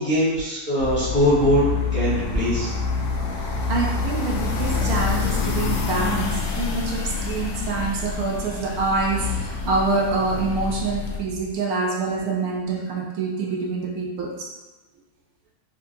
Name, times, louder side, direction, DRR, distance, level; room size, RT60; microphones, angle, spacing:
voice 1, 0.0-2.7, equal, 10° left, -9 dB, 0.8 m, -21 dB
sound 1, 0.8-11.2, left 5 dB, 65° left, 0.8 m, -27 dB
voice 2, 3.7-14.5, right 3 dB, 75° right, -1 dB, 1.0 m, -26 dB
3.8 x 2.9 x 2.6 m, 1.2 s
omnidirectional pair, 1.6 m